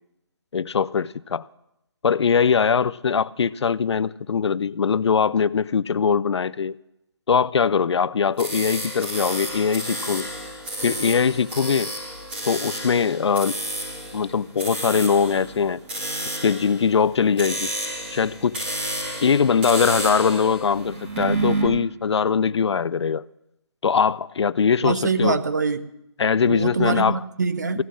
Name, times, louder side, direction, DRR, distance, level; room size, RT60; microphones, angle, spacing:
voice 1, 0.5-1.5 2.0-6.7 7.3-10.3 10.8-11.9 12.5-13.6 14.1-15.8 16.4-17.7 18.1-18.7 19.2-23.2 23.8-25.4 26.2-27.2 27.8-27.9, left 6 dB, 75° left, 0.4 m, -21 dB
sound 1, 8.4-21.7, right 1 dB, 25° right, 2.2 m, -31 dB
voice 2, 24.8-25.9 26.4-27.8, right 4 dB, 40° right, 0.6 m, -24 dB
15.5 x 7.4 x 7.4 m
hypercardioid pair, 175°, 14 cm